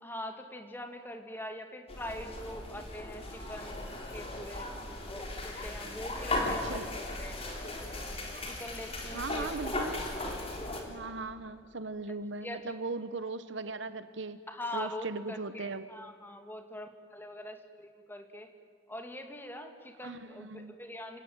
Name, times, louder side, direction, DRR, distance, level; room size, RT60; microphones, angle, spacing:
voice 1, 0.0-3.8 4.1-4.7 5.1-7.4 8.5-9.7 12.4-12.7 14.5-18.5 18.9-21.2, left 1 dB, 10° left, 5 dB, 2.0 m, -43 dB
sound 1, 1.9-10.8, left 2 dB, 30° left, 3.9 m, -37 dB
voice 2, 6.5-6.9 9.1-10.1 10.9-14.4 14.7-15.9 20.0-20.8, right 3 dB, 70° right, 13 dB, 1.1 m, -38 dB
29.0 x 17.0 x 9.3 m, 2.3 s
head